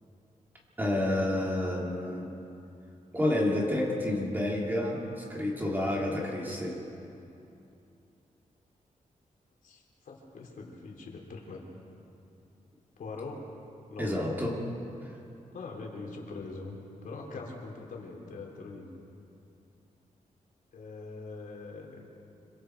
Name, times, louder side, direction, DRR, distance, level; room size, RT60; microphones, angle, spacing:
voice 1, 0.8-2.3 3.1-6.8 14.0-14.6 15.0-15.1, left 1 dB, 15° right, -2 dB, 2.8 m, -29 dB
voice 2, 9.6-11.6 13.0-13.4 13.9-14.1 15.5-16.7 17.0-18.9 20.7-22.1, left 3 dB, 75° left, -1 dB, 3.4 m, -42 dB
26.0 x 23.5 x 4.6 m, 2.8 s
wide cardioid pair, 175°, 14 cm